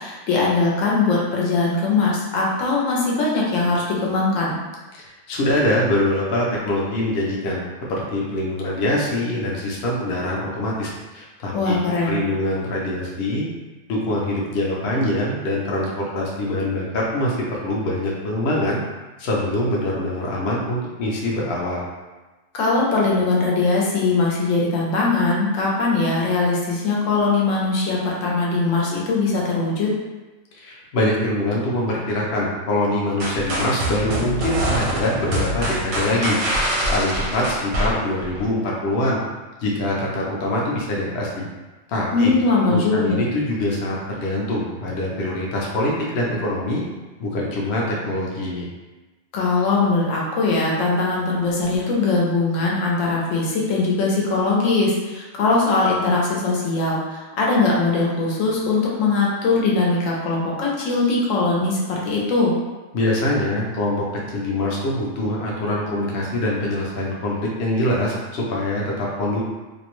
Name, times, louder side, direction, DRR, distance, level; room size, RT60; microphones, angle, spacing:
voice 1, 0.0-4.6 11.5-12.2 22.5-29.9 42.1-43.2 49.3-62.5, left 3 dB, 80° left, -4 dB, 1.0 m, -21 dB
voice 2, 4.9-11.8 12.0-13.5 13.9-18.8 19.2-21.8 30.5-36.4 36.9-39.2 39.6-41.5 41.9-42.3 42.7-46.8 47.2-48.7 62.9-64.0 64.3-69.4, left 1 dB, 60° left, -4 dB, 0.7 m, -24 dB
sound 1, 33.2-38.5, right 1 dB, 85° right, 1.0 m, -24 dB
2.6 x 2.1 x 2.9 m, 1.2 s
omnidirectional pair, 1.3 m